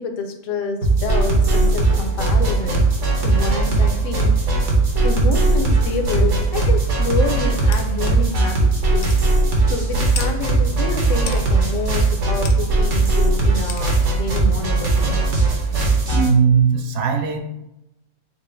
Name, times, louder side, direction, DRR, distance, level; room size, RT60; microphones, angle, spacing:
voice 1, 0.0-2.8 3.2-4.4 5.0-9.2 9.7-15.3, left 4 dB, 65° left, 5 dB, 0.9 m, -28 dB
sound 1, 0.8-16.3, right 3 dB, 55° right, 1.2 m, -18 dB
sound 2, 7.7-7.9 8.4-8.5 9.0-9.2 10.1-10.3 11.3-11.4 12.4-12.6 13.7-13.9, left 5 dB, 85° left, 0.5 m, -32 dB
voice 2, 16.1-17.4, right 6 dB, 70° right, 4 dB, 0.9 m, -18 dB
4.4 x 2.0 x 4.3 m, 0.89 s
omnidirectional pair, 1.6 m